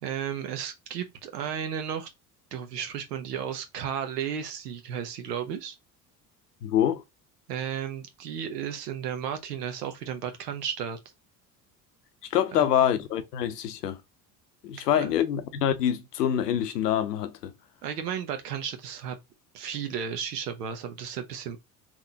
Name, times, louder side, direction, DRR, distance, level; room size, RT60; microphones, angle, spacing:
voice 1, 0.0-2.1 2.5-5.8 7.5-11.0 12.6-12.7 15.0-15.2 17.8-19.2 19.5-21.6, right 8 dB, 85° right, 0.9 m, -33 dB
voice 2, 6.6-7.0 12.3-14.0 14.6-17.5, left 10 dB, 90° left, 0.7 m, -25 dB
3.6 x 2.9 x 2.8 m
hypercardioid pair, 60°, 47 cm